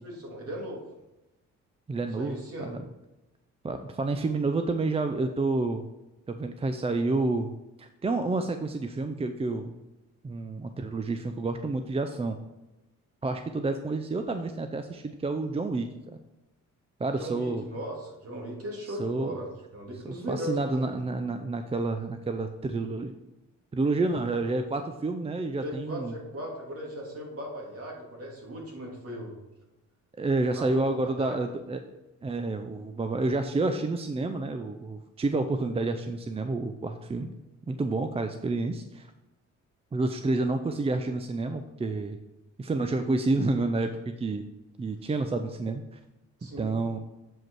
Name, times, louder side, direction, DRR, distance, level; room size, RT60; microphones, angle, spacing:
voice 1, 0.0-0.8 2.2-2.7 17.2-21.0 25.6-29.3 30.5-30.7 31.0-31.5 46.4-46.8, equal, 50° right, -2 dB, 2.8 m, -38 dB
voice 2, 1.9-2.4 2.7-2.8 3.6-5.9 6.3-7.5 7.8-9.7 10.2-12.4 13.2-16.2 17.0-17.6 18.9-19.3 20.0-23.1 23.7-26.1 30.2-31.8 32.2-37.3 37.7-39.1 39.9-42.2 42.6-44.5 44.8-45.8 46.6-47.0, right 3 dB, 20° right, 7 dB, 0.5 m, -29 dB
7.7 x 5.0 x 4.7 m, 1.0 s
cardioid pair, 90°, 30 cm